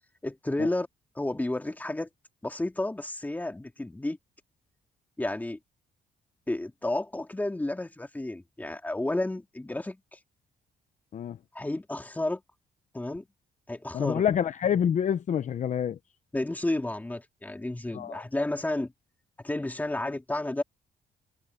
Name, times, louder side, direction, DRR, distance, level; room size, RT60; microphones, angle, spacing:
voice 1, 0.2-0.9 1.2-2.1 2.4-4.2 5.2-5.6 6.5-10.2 11.5-12.4 12.9-13.3 13.7-14.2 16.3-18.9 19.4-20.6, left 2 dB, 10° left, 2.6 m, -31 dB
voice 2, 13.9-16.0 17.9-18.2, left 8 dB, 50° left, 0.8 m, -27 dB
cardioid pair, 125°, 16 cm